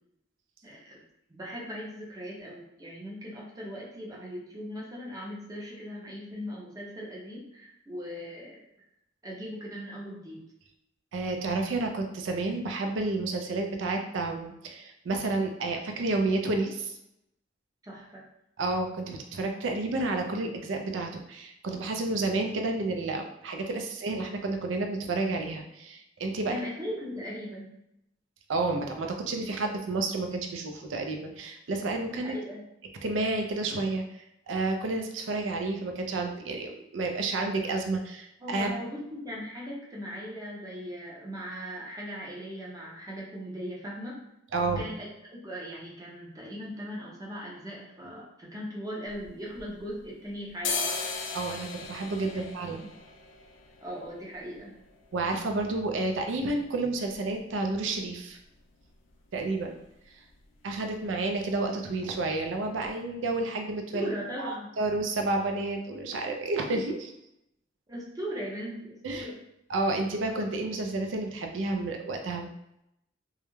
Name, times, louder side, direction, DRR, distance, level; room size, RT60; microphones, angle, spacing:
voice 1, 0.6-1.0 1.3-8.6 9.2-10.4 17.8-18.2 26.5-27.8 32.0-32.6 38.4-44.2 44.8-50.9 52.3-52.4 52.7-52.9 53.8-54.7 63.9-64.7 67.9-69.4, equal, 20° right, -4 dB, 0.6 m, -39 dB
voice 2, 11.1-17.0 18.6-26.6 28.5-32.4 33.0-38.7 44.5-44.9 51.3-52.8 55.1-58.4 59.3-59.8 60.6-64.1 64.4-67.1 69.0-69.3 69.7-72.5, right 2 dB, 75° right, 4 dB, 0.4 m, -30 dB
sound 1, 49.1-50.1 50.5-58.2 58.5-58.6 58.8-59.4 59.7-59.9 60.2-60.4 60.7-61.4 61.8-61.9 62.4-62.5 62.8-62.9, left 4 dB, 75° left, 0.4 m, -38 dB
2.3 x 2.1 x 3.0 m, 0.82 s
head